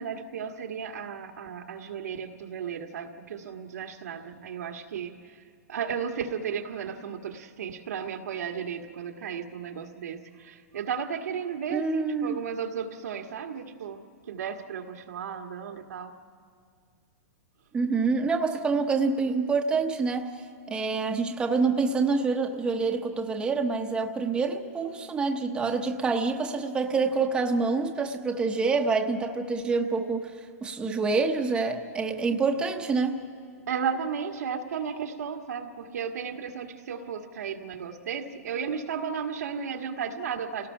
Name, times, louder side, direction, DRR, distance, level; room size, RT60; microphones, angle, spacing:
voice 1, 0.0-5.4 5.7-14.0 14.3-16.1 33.7-40.7, right 7 dB, 85° right, 3 dB, 1.8 m, -34 dB
voice 2, 11.7-12.4 17.7-20.3 20.7-30.3 30.6-33.2, right 4 dB, 10° right, 4 dB, 0.9 m, -26 dB
29.0 x 18.0 x 5.7 m, 2.1 s
hypercardioid pair, 155°, 9 cm